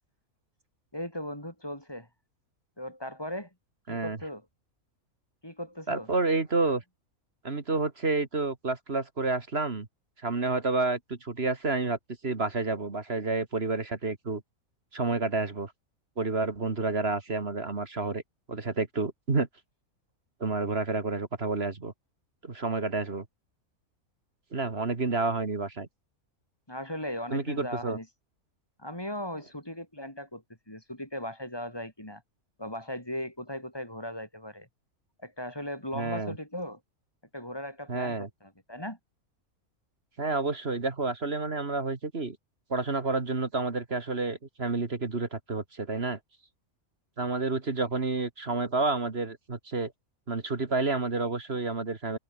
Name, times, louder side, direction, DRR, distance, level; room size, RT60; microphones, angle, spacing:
voice 1, 0.9-2.1 2.8-3.5 3.9-4.4 5.4-6.1 26.7-28.1 28.8-32.2 32.6-34.7 35.2-36.8 37.3-39.0, left 1 dB, 15° left, 4.5 m, -38 dB
voice 2, 3.9-4.2 5.9-6.8 7.4-9.9 10.2-12.0 12.2-14.4 14.9-15.7 16.2-18.2 18.5-19.5 20.4-21.9 22.4-23.3 24.5-25.9 27.3-28.0 35.9-36.3 37.9-38.3 40.2-42.4 42.7-46.2 47.2-49.9 50.3-52.2, right 3 dB, 45° right, 2.2 m, -29 dB
open air
omnidirectional pair, 1.5 m